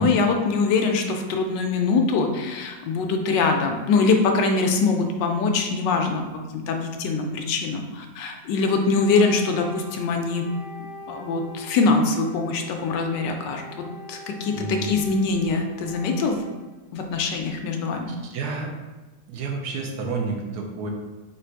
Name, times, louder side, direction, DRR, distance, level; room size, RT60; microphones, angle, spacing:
voice 1, 0.0-10.5 11.1-16.4 16.9-18.1, left 4 dB, 85° left, 3 dB, 1.2 m, -23 dB
Wind instrument woodwind instrument, 8.6-16.7, right 1 dB, 45° right, 0.7 m, -43 dB
voice 2, 14.5-14.9 18.1-18.7 19.3-20.9, right 4 dB, 70° right, 1 dB, 1.2 m, -29 dB
3.9 x 2.5 x 4.4 m, 1.2 s
omnidirectional pair, 1.9 m